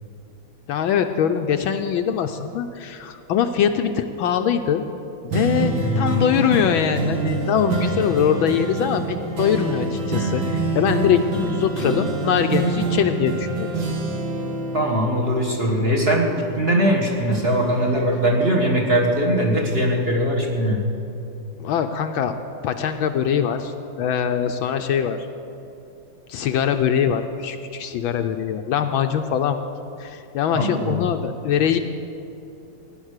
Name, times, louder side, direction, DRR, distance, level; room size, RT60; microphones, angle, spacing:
voice 1, 0.7-4.8 5.2-13.7 21.6-22.3 22.6-25.2 26.3-29.6 30.0-31.8, left 8 dB, 75° left, 7 dB, 1.3 m, -22 dB
sound 1, 5.3-16.9 17.3-19.2 19.7-19.8, right 2 dB, 60° right, 2.3 m, -27 dB
voice 2, 5.8-6.2 14.7-20.8 30.5-31.0, right 1 dB, 30° right, 0 dB, 1.6 m, -21 dB
16.5 x 10.0 x 6.5 m, 2.8 s
omnidirectional pair, 2.4 m